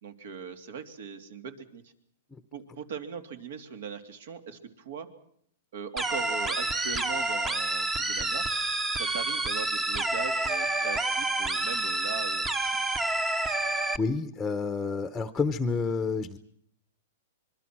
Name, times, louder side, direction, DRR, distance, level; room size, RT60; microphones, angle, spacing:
voice 1, 0.0-1.8 2.5-5.1 5.7-8.5 8.9-12.9, right 6 dB, 70° right, 8 dB, 3.1 m, -40 dB
sound 1, 6.0-14.0, right 2 dB, 15° right, 1.0 m, -29 dB
voice 2, 14.0-16.4, left 4 dB, 5° left, 10 dB, 0.9 m, -29 dB
25.0 x 23.5 x 6.2 m, 0.67 s
hypercardioid pair, 155°, 0 cm